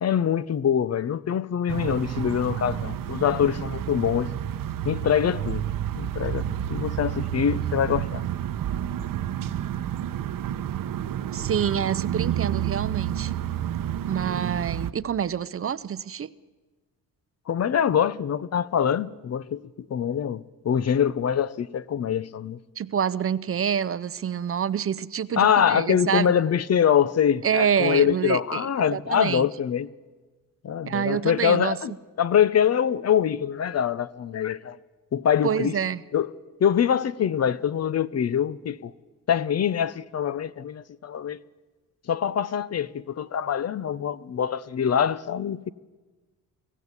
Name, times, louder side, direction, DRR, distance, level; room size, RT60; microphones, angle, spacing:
voice 1, 0.0-4.3 4.8-5.7 5.9-8.2 17.5-19.6 19.9-22.6 25.4-29.9 30.6-31.9 32.2-34.8 35.1-35.8 36.1-36.3 36.6-38.9 39.3-41.4 42.1-45.7, left 8 dB, 45° left, 0.7 m, -24 dB
sound 1, 1.7-14.9, right 11 dB, 65° right, 0.9 m, -30 dB
voice 2, 11.3-13.3 14.1-16.3 22.8-26.5 27.4-29.5 30.9-31.8 35.4-36.0, right 8 dB, 40° right, 0.6 m, -27 dB
24.0 x 16.0 x 8.2 m
cardioid pair, 100°, 36 cm